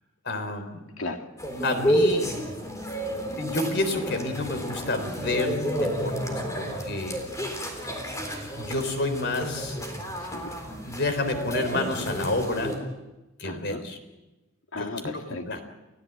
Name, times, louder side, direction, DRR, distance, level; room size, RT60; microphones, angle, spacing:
voice 1, 0.2-0.8 1.6-2.3 3.4-7.2 8.6-9.8 10.8-12.7 13.4-14.0 14.8-14.9 15.5-15.6, left 2 dB, 55° left, 8 dB, 3.5 m, -29 dB
voice 2, 1.0-1.3 10.2-10.5 13.4-13.8 14.7-15.6, left 2 dB, 85° left, 5 dB, 2.2 m, -35 dB
sound 1, 1.4-12.8, equal, 15° left, 3.8 m, -30 dB
30.0 x 15.0 x 8.9 m, 1.1 s
head